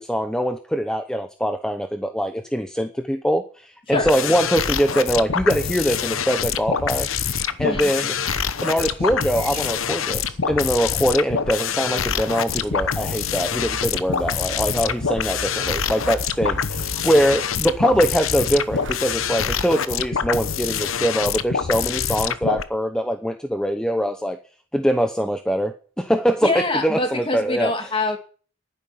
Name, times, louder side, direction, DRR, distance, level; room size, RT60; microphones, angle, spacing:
voice 1, 0.0-7.1 7.6-8.1 8.6-24.4 24.7-27.7, equal, 5° left, 7 dB, 0.8 m, -23 dB
sound 1, 3.9-22.6, left 7 dB, 85° left, 1.0 m, -25 dB
sound 2, 4.2-16.3, right 4 dB, 30° right, 3.3 m, -47 dB
voice 2, 7.6-7.9 26.4-28.2, left 2 dB, 25° left, 5 dB, 2.3 m, -25 dB
sound 3, 12.3-19.7, right 2 dB, 65° right, 1.1 m, -39 dB
11.5 x 9.9 x 10.0 m, 0.42 s
head